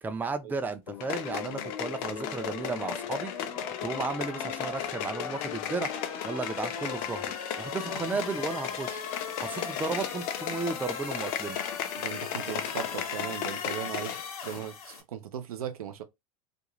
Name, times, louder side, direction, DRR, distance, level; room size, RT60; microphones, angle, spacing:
voice 1, 0.0-3.3 3.8-5.9 6.2-11.6, right 4 dB, 10° right, 0.5 m, -34 dB
sound 1, 0.9-15.0, left 6 dB, 85° left, 1.0 m, -39 dB
sound 2, 1.0-14.3 14.6-14.7, left 10 dB, 55° left, 0.6 m, -36 dB
voice 2, 12.0-14.1 14.4-16.0, right 10 dB, 85° right, 0.7 m, -38 dB
2.5 x 2.3 x 3.0 m
hypercardioid pair, 105°, 18 cm